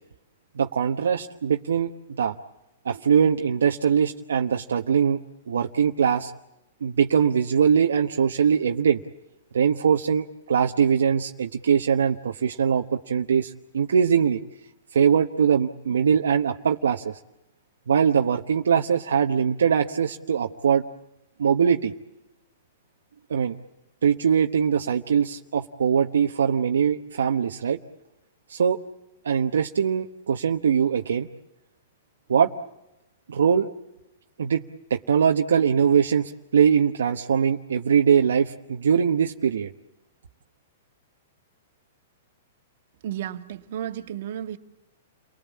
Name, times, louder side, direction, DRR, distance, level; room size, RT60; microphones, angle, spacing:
voice 1, 0.6-2.3 2.8-5.2 5.5-6.3 6.8-9.0 9.5-14.4 14.9-17.1 17.9-20.8 21.4-21.9 23.3-23.6 24.0-27.8 28.5-28.8 29.2-31.3 32.3-32.5 33.3-33.7 34.4-34.6 34.9-39.7, right 7 dB, 85° right, 1.0 m, -22 dB
voice 2, 43.0-44.6, right 10 dB, 65° right, 1.7 m, -33 dB
29.5 x 19.5 x 8.5 m
hypercardioid pair, 130°, 0 cm